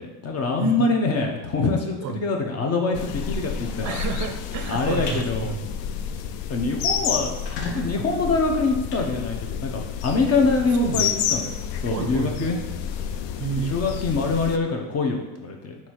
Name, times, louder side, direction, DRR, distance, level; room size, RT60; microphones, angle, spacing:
voice 1, 0.0-4.0 4.7-5.5 6.5-11.5 11.8-12.6 13.7-15.8, left 3 dB, 35° left, 3 dB, 0.8 m, -24 dB
voice 2, 0.6-0.9 2.0-2.2 3.8-5.6 10.8-11.1 11.9-12.5 13.4-13.8, right 7 dB, 40° right, 7 dB, 0.5 m, -30 dB
sound 1, 2.9-14.6, left 8 dB, 65° left, 0.5 m, -30 dB
sound 2, 5.1-5.2 5.7-5.9 6.3-6.4 6.6-6.7 7.2-9.8, left 2 dB, 85° left, 0.8 m, -37 dB
4.0 x 2.9 x 4.6 m, 1.1 s
supercardioid pair, 105°, 46 cm